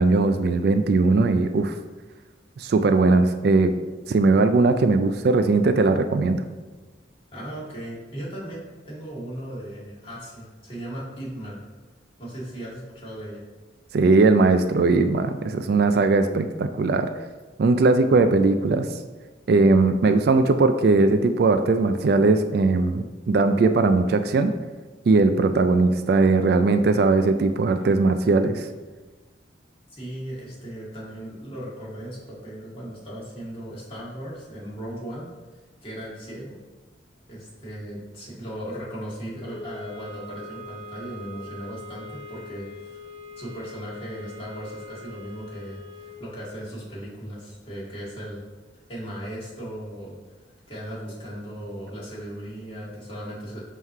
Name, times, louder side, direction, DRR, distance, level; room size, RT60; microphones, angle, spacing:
voice 1, 0.0-1.7 2.6-3.7 4.1-6.4 13.9-17.1 17.6-18.9 19.5-24.5 25.1-28.7, right 3 dB, 55° right, 9 dB, 0.3 m, -19 dB
voice 2, 7.3-11.6 12.2-13.4 29.9-35.3 35.8-36.6 37.3-43.0 43.4-48.4 48.9-50.2 50.7-53.6, equal, 30° left, -7 dB, 1.9 m, -37 dB
sound 1, 39.3-46.3, left 2 dB, 5° right, 0.9 m, -42 dB
5.6 x 3.1 x 5.4 m, 1.3 s
head